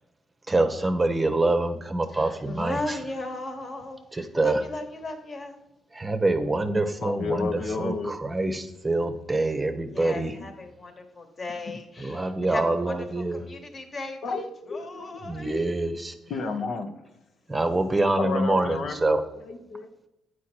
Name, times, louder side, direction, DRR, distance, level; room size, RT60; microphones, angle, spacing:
voice 1, 0.5-3.0 4.1-4.6 5.9-10.3 12.0-13.4 15.3-16.1 17.5-19.2, right 2 dB, 20° right, 8 dB, 0.8 m, -25 dB
voice 2, 2.1-5.6 9.9-15.7, left 2 dB, 40° left, 5 dB, 1.3 m, -37 dB
voice 3, 7.0-8.1 10.3-10.4 14.2-15.6 16.3-16.9 18.2-19.0 19.5-19.9, left 4 dB, 65° left, 5 dB, 0.7 m, -31 dB
8.4 x 4.6 x 4.3 m, 0.91 s
cardioid pair, 90°, 0 cm